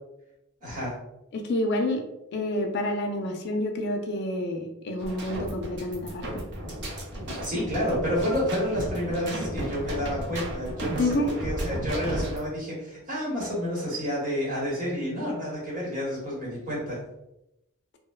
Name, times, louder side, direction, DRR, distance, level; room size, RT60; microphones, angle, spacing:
voice 1, 0.6-0.9 7.4-17.0, equal, 40° right, -5 dB, 1.0 m, -30 dB
voice 2, 1.3-2.0 2.3-6.4 11.0-11.3, left 1 dB, 50° left, 4 dB, 0.4 m, -28 dB
sound 1, 5.0-12.5, right 1 dB, 55° right, 0.6 m, -34 dB
2.6 x 2.1 x 2.3 m, 0.88 s
head